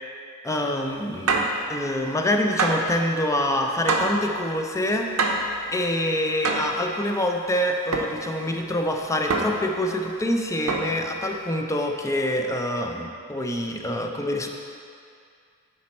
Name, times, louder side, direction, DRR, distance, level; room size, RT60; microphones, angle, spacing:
voice 1, 0.4-5.1 5.7-14.5, left 1 dB, 15° left, 2 dB, 0.5 m, -26 dB
sound 1, 1.3-1.6 2.6-2.9 3.9-4.2 5.2-5.5 6.4-6.8 7.9-8.2 9.3-9.7 10.7-11.0, right 3 dB, 75° right, 0.7 m, -24 dB
10.5 x 4.3 x 4.2 m, 2.4 s
head